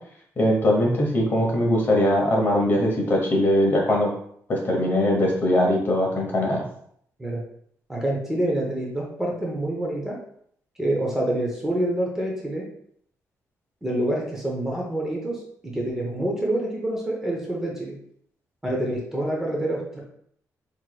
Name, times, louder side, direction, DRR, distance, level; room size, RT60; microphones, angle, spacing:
voice 1, 0.4-4.1 4.5-6.6, left 1 dB, 35° left, -1 dB, 0.9 m, -21 dB
voice 2, 7.9-10.2 10.8-12.7 13.8-18.0 18.6-20.0, right 1 dB, 10° right, -2 dB, 0.6 m, -27 dB
4.5 x 2.9 x 2.2 m, 0.66 s
wide cardioid pair, 170°, 6 cm